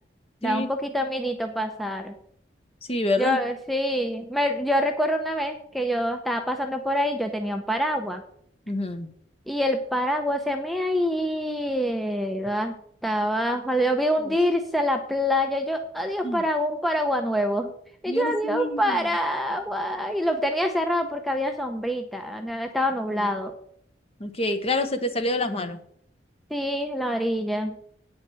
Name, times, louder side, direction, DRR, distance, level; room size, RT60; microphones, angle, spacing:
voice 1, 0.4-2.1 3.2-8.2 9.5-12.7 13.0-17.7 18.0-23.5 26.5-27.7, equal, ahead, 5 dB, 0.7 m, -26 dB
voice 2, 2.9-3.4 8.7-9.1 14.2-14.3 16.2-16.4 18.1-19.1 23.1-23.3 24.2-25.8, left 2 dB, 30° left, 9 dB, 1.0 m, -27 dB
9.0 x 6.0 x 7.6 m, 0.66 s
head